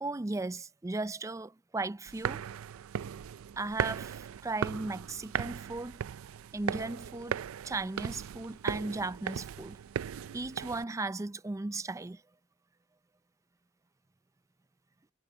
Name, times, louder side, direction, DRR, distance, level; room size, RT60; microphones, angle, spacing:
voice 1, 0.0-2.4 3.6-6.0 6.5-9.8 10.3-12.2, right 2 dB, 15° right, 0.4 m, -36 dB
sound 1, 2.1-10.8, right 8 dB, 90° right, 0.4 m, -37 dB
head